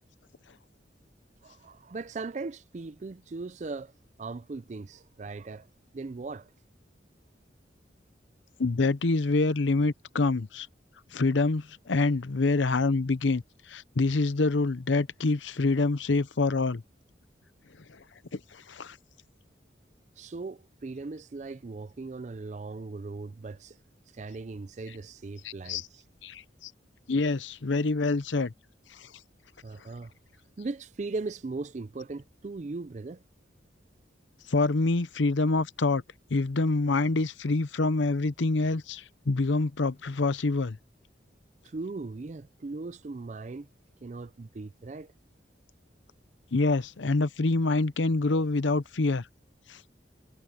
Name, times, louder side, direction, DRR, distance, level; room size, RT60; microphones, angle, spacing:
voice 1, 1.4-3.9 4.2-5.7 5.9-6.5 20.2-23.8 24.1-26.0 29.6-30.1 30.6-33.2 41.6-43.7 44.0-45.1, right 3 dB, 40° right, 0.4 m, -38 dB
voice 2, 8.6-10.7 11.1-13.4 13.7-16.8 18.3-19.0 25.4-25.9 26.2-26.7 27.1-28.5 29.0-29.1 34.5-36.0 36.3-40.8 46.5-49.3 49.7-49.8, left 3 dB, 90° left, 0.8 m, -26 dB
head